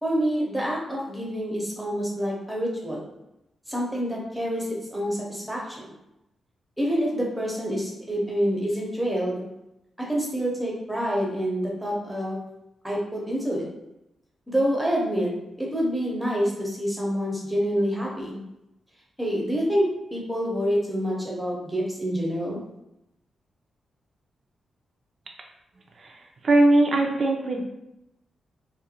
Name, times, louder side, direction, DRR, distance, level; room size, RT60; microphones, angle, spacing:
voice 1, 0.0-3.1 3.7-5.9 6.8-9.4 10.0-12.4 12.8-13.7 14.5-15.3 15.6-18.4 19.2-22.6, equal, ahead, -4 dB, 0.7 m, -27 dB
voice 2, 26.0-27.6, right 2 dB, 50° right, 1 dB, 0.5 m, -21 dB
2.4 x 2.1 x 2.8 m, 0.88 s
cardioid pair, 110°, 0 cm